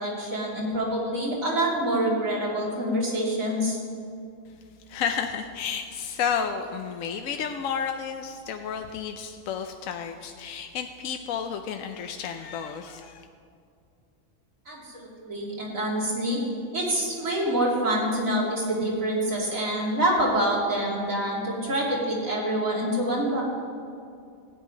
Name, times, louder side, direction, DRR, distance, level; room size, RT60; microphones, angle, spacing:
voice 1, 0.0-3.8 14.7-16.4 16.7-23.4, right 1 dB, 75° right, -5 dB, 3.4 m, -26 dB
voice 2, 4.9-13.3, left 7 dB, 80° left, 5 dB, 1.0 m, -31 dB
14.0 x 5.7 x 9.5 m, 2.5 s
omnidirectional pair, 1.4 m